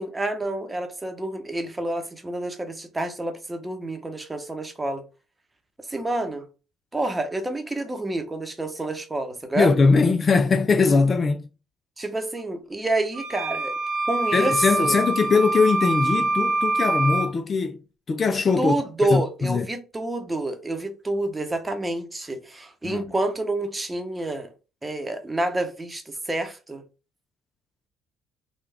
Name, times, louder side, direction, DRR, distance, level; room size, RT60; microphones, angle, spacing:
voice 1, 0.0-5.0 5.9-6.4 6.9-9.7 12.0-13.8 14.1-15.0 18.6-24.5 24.8-26.8, right 2 dB, 15° right, 0.9 m, -28 dB
voice 2, 9.6-11.5 14.3-17.8 18.1-18.8 19.1-19.7 22.8-23.0, left 4 dB, 40° left, 0.4 m, -21 dB
sound 1, 13.1-17.3, right 2 dB, 75° right, 0.6 m, -25 dB
3.4 x 2.3 x 3.4 m
supercardioid pair, 65°, 0 cm